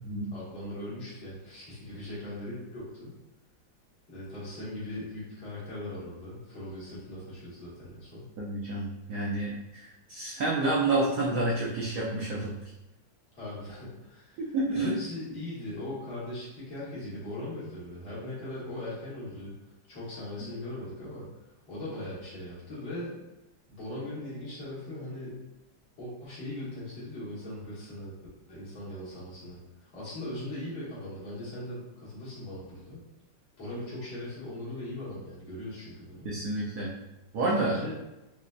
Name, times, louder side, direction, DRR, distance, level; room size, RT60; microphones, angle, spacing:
voice 1, 0.3-3.1 4.1-8.3 13.3-19.5 19.9-21.3 21.7-23.2 23.7-25.4 26.0-28.1 28.5-33.0 33.6-36.3 37.5-37.9, left 1 dB, 55° left, -10 dB, 1.9 m, -39 dB
voice 2, 8.4-12.5 14.4-14.9 36.2-36.9 37.3-37.8, right 2 dB, 80° right, -4 dB, 0.8 m, -29 dB
5.0 x 2.1 x 2.2 m, 0.96 s
omnidirectional pair, 2.3 m